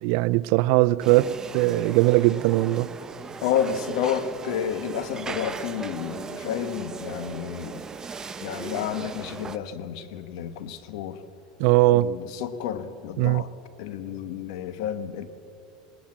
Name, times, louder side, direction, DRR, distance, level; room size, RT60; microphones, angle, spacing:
voice 1, 0.0-2.9 11.6-12.1 13.2-13.4, right 18 dB, 65° right, 0.5 m, -20 dB
sound 1, 1.0-9.6, right 5 dB, 20° right, 0.8 m, -37 dB
voice 2, 3.4-7.8 8.4-11.2 11.9-13.5 13.8-15.3, left 9 dB, 75° left, 1.4 m, -30 dB
19.5 x 18.5 x 7.4 m
supercardioid pair, 115°, 3 cm